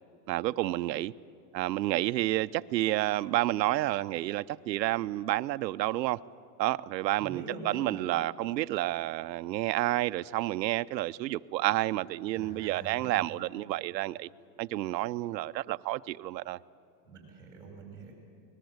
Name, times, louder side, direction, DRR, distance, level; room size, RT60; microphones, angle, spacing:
voice 1, 0.3-1.1 1.5-6.2 6.6-14.3 14.6-16.6, right 16 dB, 85° right, 0.7 m, -30 dB
voice 2, 7.2-7.9 12.3-13.3 17.0-18.1, right 4 dB, 10° right, 6.7 m, -44 dB
24.0 x 21.0 x 8.0 m
supercardioid pair, 175°, 50 cm